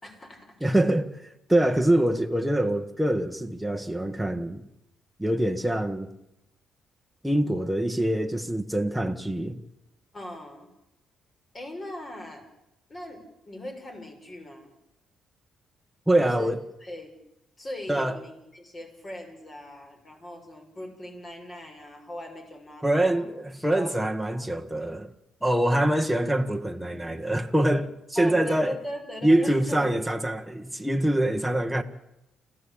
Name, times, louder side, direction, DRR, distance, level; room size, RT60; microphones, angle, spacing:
voice 1, 0.0-0.6 10.1-10.7 11.5-12.5 12.9-14.7 16.2-16.5 16.8-17.1 17.6-23.2 23.6-23.9 24.3-24.5 28.1-29.9, left 1 dB, 30° left, 6.2 m, -40 dB
voice 2, 0.6-4.6 5.2-6.1 7.2-9.6 16.1-16.6 17.9-18.2 22.8-25.1 25.4-28.8 29.2-31.8, right 1 dB, 5° right, 1.5 m, -24 dB
29.0 x 13.5 x 8.7 m
cardioid pair, 90°, 0 cm